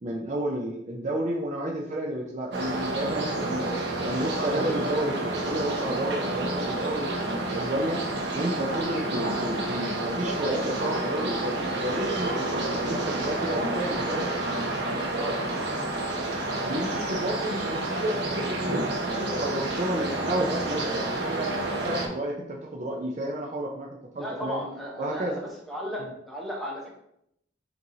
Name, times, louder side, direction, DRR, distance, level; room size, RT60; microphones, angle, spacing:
voice 1, 0.0-3.7 4.0-8.0 8.3-14.4 16.6-21.5 21.8-23.9 24.1-24.7 25.0-25.4 26.0-26.1, right 1 dB, 40° right, 0 dB, 0.5 m, -31 dB
sound 1, 2.5-22.1, right 2 dB, 60° right, 0.8 m, -29 dB
voice 2, 24.2-25.4 25.7-26.9, equal, ahead, -3 dB, 0.9 m, -35 dB
4.5 x 2.7 x 3.8 m, 0.77 s
head